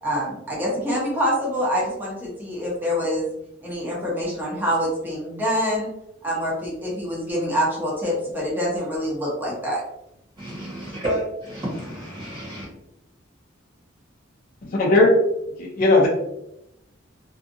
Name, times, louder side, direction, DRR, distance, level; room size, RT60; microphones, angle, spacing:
voice 1, 0.0-3.3 3.6-5.9 6.2-9.8, equal, 10° right, -5 dB, 0.8 m, -25 dB
voice 2, 10.4-12.7, right 1 dB, 30° right, -8 dB, 1.2 m, -30 dB
voice 3, 14.6-15.1 15.6-16.1, left 2 dB, 45° left, -2 dB, 0.5 m, -17 dB
2.6 x 2.4 x 2.5 m, 0.84 s
head